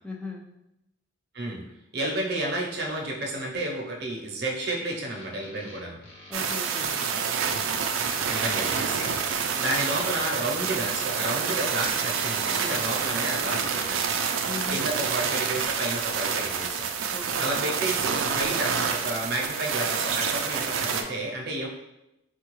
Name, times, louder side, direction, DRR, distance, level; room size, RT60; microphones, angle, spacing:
voice 1, 0.0-0.6 6.3-7.1 14.5-14.9 17.1-17.5, left 3 dB, 5° left, 0 dB, 0.3 m, -38 dB
voice 2, 1.9-6.0 8.3-9.1 9.6-14.0 14.7-16.9 17.4-21.7, right 1 dB, 55° right, -1 dB, 0.7 m, -31 dB
sound 1, 5.1-15.5, left 1 dB, 75° left, 0.8 m, -47 dB
sound 2, 6.3-21.0, right 6 dB, 90° right, 0.4 m, -28 dB
4.4 x 2.3 x 3.0 m, 0.88 s
head